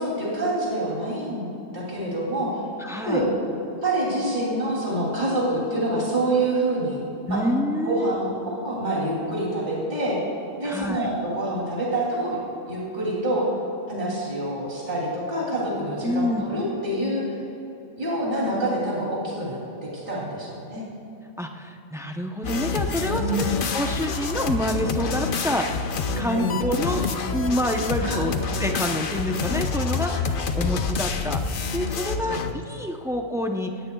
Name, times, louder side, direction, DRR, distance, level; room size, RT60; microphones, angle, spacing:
voice 1, 0.0-1.5 1.7-2.6 2.9-3.3 3.8-7.0 7.3-7.4 7.9-10.2 10.6-12.4 12.7-13.5 13.9-17.2 18.0-19.6 20.1-20.9 23.1-23.5 26.2-26.6 28.0-28.3 32.2-32.4, right 1 dB, 40° right, -5 dB, 3.2 m, -26 dB
voice 2, 2.8-3.2 7.3-8.2 10.6-11.1 16.0-16.4 21.4-23.5 23.7-28.3 28.6-33.7, equal, 5° right, 3 dB, 0.5 m, -27 dB
sound 1, 22.4-32.5, left 4 dB, 50° left, 0.8 m, -27 dB
19.0 x 16.0 x 2.3 m, 3.0 s
omnidirectional pair, 1.2 m